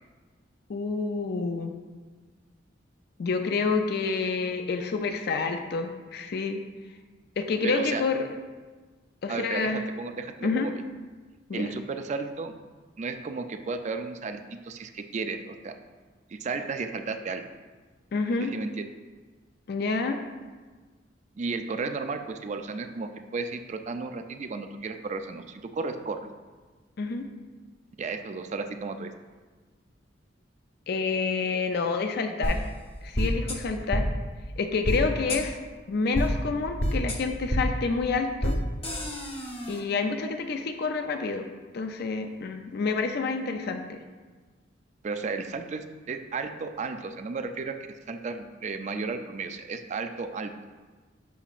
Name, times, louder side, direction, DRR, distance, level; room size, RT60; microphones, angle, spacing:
voice 1, 0.7-1.7 3.2-6.6 7.4-8.2 9.2-9.8 10.4-10.7 11.5-11.7 18.1-18.5 19.7-20.2 27.0-27.3 30.9-32.7 33.0-34.1 34.6-35.6 35.9-38.6 39.7-41.5 41.7-44.0, left 4 dB, 60° left, 6 dB, 0.4 m, -28 dB
voice 2, 7.6-8.0 9.3-10.8 11.5-12.6 13.0-15.8 16.3-17.4 18.4-18.8 21.4-26.2 28.0-29.1 45.0-47.8 48.1-50.5, right 4 dB, 40° right, 7 dB, 0.4 m, -33 dB
sound 1, 32.4-32.5 33.1-33.6 33.9-34.0 34.8-35.0 35.3-35.4 36.1-36.3 36.8-37.2 37.5-37.6 38.4-38.5 38.8-39.8, equal, 35° left, 0.8 m, -27 dB
7.0 x 5.9 x 2.4 m, 1.4 s
head